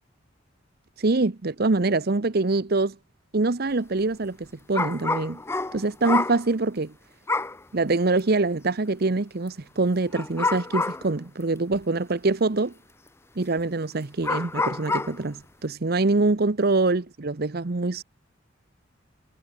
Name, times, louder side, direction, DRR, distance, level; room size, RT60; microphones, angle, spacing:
voice 1, 1.0-2.9 3.3-5.4 5.7-6.9 7.7-12.7 13.4-18.0, right 3 dB, 55° right, 0.9 m, -24 dB
sound 1, 4.7-6.4 7.3-7.6 8.2-8.3 10.1-11.1 11.8-11.9 13.6-13.7 14.2-15.2, left 3 dB, 15° left, 0.6 m, -27 dB
head